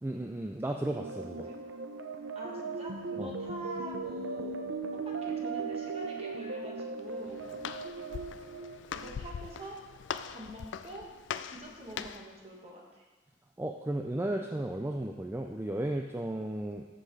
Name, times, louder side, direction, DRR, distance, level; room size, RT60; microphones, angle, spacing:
voice 1, 0.0-1.5 3.2-3.3 13.6-16.9, right 1 dB, 10° right, 3 dB, 0.4 m, -34 dB
sound 1, 1.0-9.6, right 4 dB, 90° right, 0.7 m, -38 dB
voice 2, 2.3-4.6 4.9-7.4 8.9-9.8 10.3-11.0 11.5-13.0, right 1 dB, 30° right, -2 dB, 1.6 m, -45 dB
Walk footsteps, 7.0-12.4, left 7 dB, 70° left, 0.3 m, -42 dB
13.0 x 6.7 x 3.2 m, 1.2 s
head